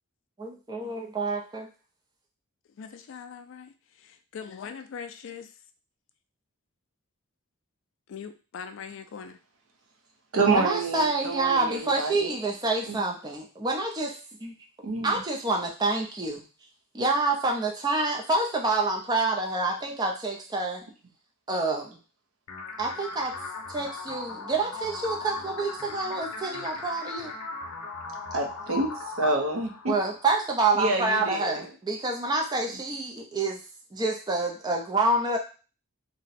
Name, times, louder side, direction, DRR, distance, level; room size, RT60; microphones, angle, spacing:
voice 1, 0.4-1.7 10.5-14.5 15.0-16.4 16.9-20.8 21.5-22.0 22.8-23.3 23.7-27.3 29.9-33.6 33.9-35.4, right 3 dB, 20° right, 1 dB, 0.4 m, -27 dB
voice 2, 2.7-5.6 8.1-9.4, left 6 dB, 55° left, 8 dB, 0.3 m, -41 dB
voice 3, 10.3-12.3 12.9-13.0 14.8-15.2 28.3-29.9 30.7-31.7, right 3 dB, 65° right, 3 dB, 0.6 m, -27 dB
sound 1, 22.5-30.4, left 4 dB, 85° left, 0.7 m, -38 dB
2.6 x 2.1 x 4.0 m, 0.35 s
head